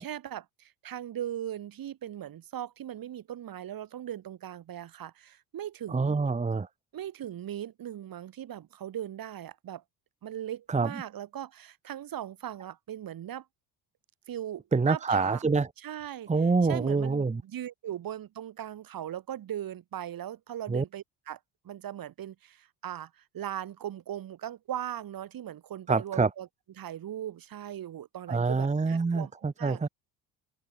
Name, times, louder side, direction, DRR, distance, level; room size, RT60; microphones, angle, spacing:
voice 1, 0.0-6.2 6.9-9.8 10.2-13.5 14.3-15.4 15.8-16.3 16.7-21.4 21.6-26.5 26.8-29.9, right 11 dB, 55° right, 2.5 m, -39 dB
voice 2, 5.9-6.7 10.7-11.0 14.7-15.7 16.3-17.4 20.7-20.8 25.9-26.3 28.3-29.9, right 4 dB, 15° right, 1.1 m, -26 dB
supercardioid pair, 70°, 42 cm